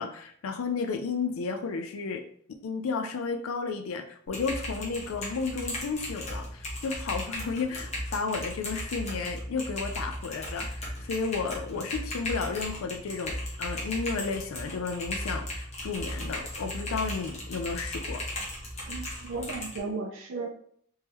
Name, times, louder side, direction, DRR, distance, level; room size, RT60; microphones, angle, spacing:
voice 1, 0.0-2.2 2.6-18.2, left 4 dB, 80° left, 6 dB, 0.4 m, -33 dB
Typing, 4.3-19.8, left 1 dB, 30° left, 1.0 m, -36 dB
voice 2, 18.9-20.5, right 3 dB, 65° right, 1 dB, 0.5 m, -35 dB
3.5 x 3.1 x 3.0 m, 0.63 s
head